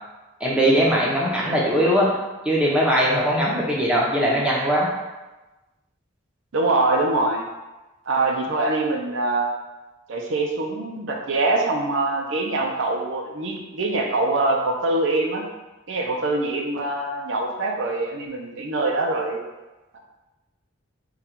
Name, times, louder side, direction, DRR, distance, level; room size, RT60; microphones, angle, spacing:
voice 1, 0.4-2.2 2.4-4.9, equal, 5° right, -5 dB, 0.6 m, -20 dB
voice 2, 6.5-7.4 8.1-9.5 10.1-15.5 15.9-19.4, right 2 dB, 65° right, 1 dB, 0.5 m, -24 dB
3.8 x 2.3 x 4.3 m, 1.1 s
head